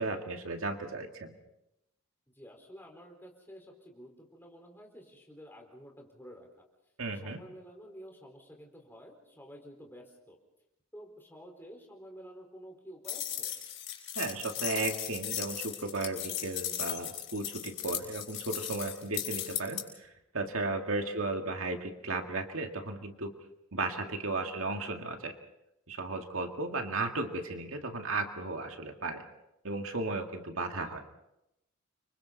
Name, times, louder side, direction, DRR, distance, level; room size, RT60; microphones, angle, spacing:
voice 1, 0.0-1.4 7.0-7.4 14.2-23.3 23.7-25.3 25.9-29.2 29.6-31.0, right 3 dB, 70° right, 4 dB, 2.1 m, -35 dB
voice 2, 2.3-6.6 7.1-10.4 10.9-13.5 20.7-21.1 23.9-24.1, equal, 10° left, 1 dB, 4.4 m, -51 dB
sound 1, 13.0-19.8, left 11 dB, 55° left, 6.2 m, -37 dB
30.0 x 25.0 x 4.1 m, 0.87 s
head